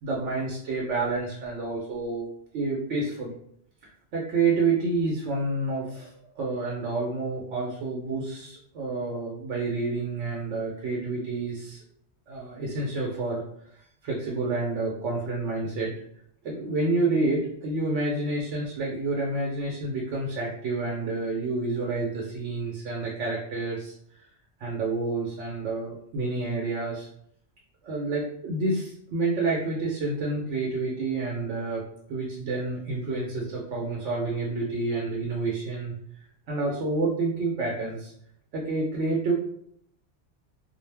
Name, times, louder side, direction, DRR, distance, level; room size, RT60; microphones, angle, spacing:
voice 1, 0.0-2.3 2.5-3.3 4.1-11.8 12.3-13.5 14.0-15.9 16.4-23.9 24.6-27.1 27.8-31.8 32.1-35.9 36.5-38.1 38.5-39.3, right 3 dB, 75° right, -2 dB, 0.9 m, -29 dB
2.4 x 2.0 x 3.2 m, 0.69 s
omnidirectional pair, 1.2 m